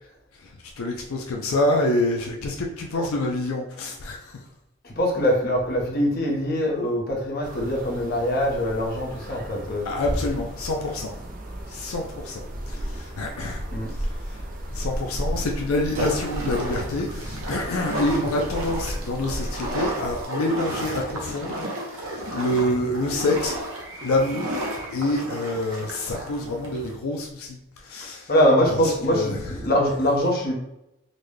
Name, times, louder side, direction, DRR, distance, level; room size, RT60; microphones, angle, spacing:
voice 1, 0.4-4.4 9.8-11.2 11.7-14.4 14.7-23.6 24.0-28.3 28.7-28.8 29.1-29.4, left 1 dB, 85° left, 1 dB, 0.5 m, -27 dB
voice 2, 4.8-9.9 13.7-13.9 18.1-18.2 28.3-30.5, equal, 45° left, -1 dB, 0.8 m, -23 dB
sound 1, 7.4-20.2, equal, 40° right, 0.4 m, -34 dB
sound 2, 15.9-27.0, right 1 dB, 85° right, 0.8 m, -32 dB
3.9 x 2.2 x 3.2 m, 0.84 s
head